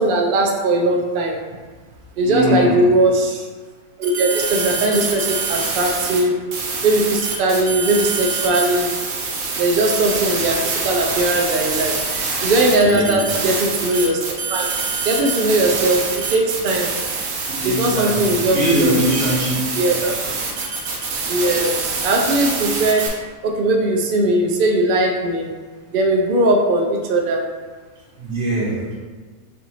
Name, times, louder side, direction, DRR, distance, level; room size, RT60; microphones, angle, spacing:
voice 1, 0.0-1.4 2.2-3.5 4.0-6.3 6.8-8.9 9.6-12.0 12.4-14.7 15.0-16.9 17.6-18.9 19.8-20.0 21.3-23.1 23.4-25.5 25.9-27.4, right 2 dB, 70° right, 0 dB, 0.5 m, -19 dB
voice 2, 2.2-2.8 12.8-13.2 17.5-19.7 20.0-20.1 28.2-28.8, right 1 dB, 45° right, -8 dB, 1.7 m, -21 dB
sound 1, 4.0-6.2 6.5-23.1, right 4 dB, 85° right, 1.2 m, -25 dB
6.8 x 2.5 x 3.2 m, 1.4 s
omnidirectional pair, 1.5 m